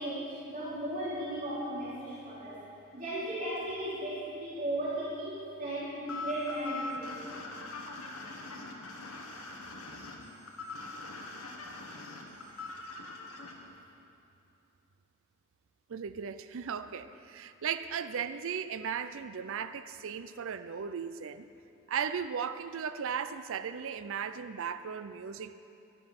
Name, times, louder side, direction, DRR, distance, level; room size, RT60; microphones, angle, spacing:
voice 1, 0.0-2.6 2.9-7.2 12.3-12.5, right 1 dB, 40° right, -9 dB, 2.9 m, -36 dB
sound 1, 6.1-13.5, left 3 dB, 80° left, 1.5 m, -42 dB
voice 2, 15.9-21.5 21.9-25.5, right 7 dB, 65° right, 12 dB, 0.5 m, -36 dB
12.0 x 11.5 x 5.9 m, 2.6 s
head